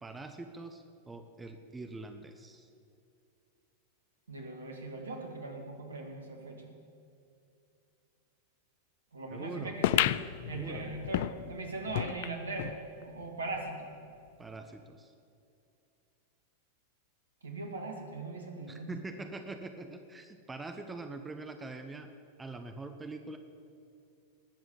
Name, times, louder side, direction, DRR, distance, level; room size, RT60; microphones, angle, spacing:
voice 1, 0.0-2.7 9.3-9.8 10.5-10.9 14.4-15.1 18.9-22.1 22.4-23.4, right 3 dB, 10° right, 6 dB, 1.0 m, -43 dB
voice 2, 4.3-6.8 9.1-10.2 10.5-13.9 17.4-19.2, right 2 dB, 70° right, 3 dB, 2.3 m, -40 dB
sound 1, 9.8-12.8 13.2-13.3 13.5-13.6 14.4-14.5, left 14 dB, 50° left, 0.4 m, -32 dB
19.5 x 7.7 x 7.6 m, 2.5 s
figure-of-eight pair, 90°, 0 cm